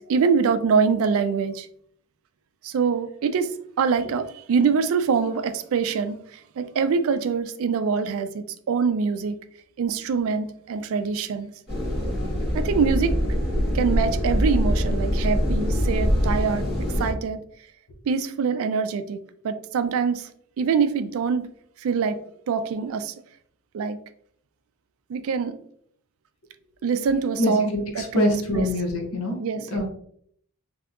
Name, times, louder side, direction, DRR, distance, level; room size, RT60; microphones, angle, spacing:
voice 1, 0.0-1.7 2.6-3.5 3.8-6.2 6.6-9.4 9.8-11.5 12.5-13.1 13.7-16.6 17.0-17.4 18.1-19.2 19.4-20.3 20.6-21.5 21.8-22.2 22.5-23.1 23.7-24.0 25.1-25.6 26.8-28.3 28.5-28.6 29.4-29.8, right 5 dB, 70° right, 10 dB, 0.3 m, -24 dB
sound 1, 11.7-17.1, equal, 45° left, 1.2 m, -23 dB
voice 2, 27.4-29.4 29.7-29.8, left 1 dB, 75° left, 1 dB, 0.7 m, -25 dB
3.4 x 2.7 x 2.4 m, 0.64 s
head